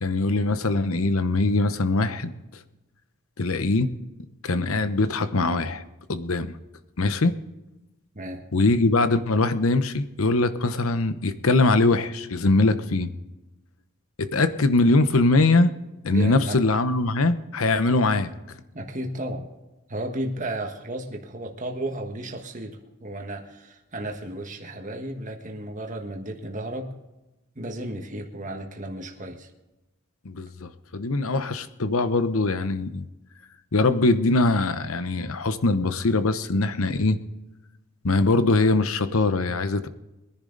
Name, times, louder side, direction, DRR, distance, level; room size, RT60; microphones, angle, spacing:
voice 1, 0.0-2.3 3.4-3.9 4.4-5.8 6.1-6.6 7.0-7.3 8.5-13.1 14.2-15.7 16.0-18.3 30.2-33.0 33.7-37.2 38.0-39.9, left 2 dB, 75° left, 11 dB, 0.9 m, -22 dB
voice 2, 8.1-8.5 16.1-16.6 18.7-19.5 19.9-26.9 27.5-29.5, right 1 dB, 35° right, 2 dB, 1.5 m, -33 dB
22.0 x 10.5 x 4.0 m, 1.0 s
head